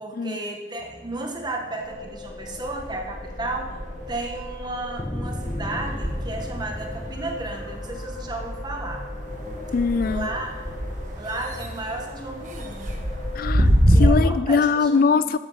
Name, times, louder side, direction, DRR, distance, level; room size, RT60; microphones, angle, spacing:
voice 1, 0.0-3.7 4.1-9.0 10.0-10.6 11.2-13.1 13.9-15.3, right 2 dB, 20° right, 2 dB, 1.5 m, -33 dB
sound 1, 0.8-2.1 2.4-14.1, equal, 40° right, 1.7 m, -27 dB
sound 2, 1.8-13.4, left 1 dB, 20° left, 1.1 m, -36 dB
voice 2, 9.7-10.3 13.4-15.4, left 5 dB, 50° left, 14 dB, 0.3 m, -22 dB
12.5 x 9.8 x 5.8 m, 1.3 s
head